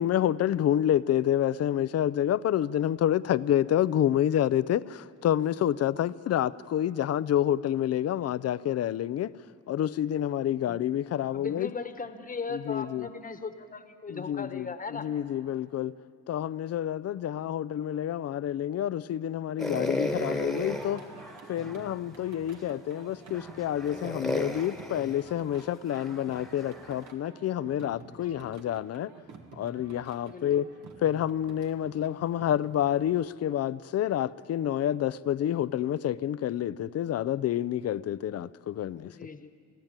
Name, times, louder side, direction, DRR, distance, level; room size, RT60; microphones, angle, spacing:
voice 1, 0.0-9.3 9.7-11.7 12.5-13.1 14.1-15.9 16.3-21.1 21.5-29.1 29.5-30.7 31.0-39.1, left 11 dB, 55° left, 0.6 m, -28 dB
voice 2, 11.3-15.1 28.3-28.8 30.3-30.7 39.0-39.5, left 4 dB, 25° left, 1.3 m, -38 dB
sound 1, 19.6-22.0 22.6-22.7 23.3-27.1, left 1 dB, ahead, 1.4 m, -35 dB
Singing, 20.7-33.1, right 5 dB, 70° right, 2.0 m, -50 dB
29.5 x 10.5 x 8.9 m
cardioid pair, 90°, 30 cm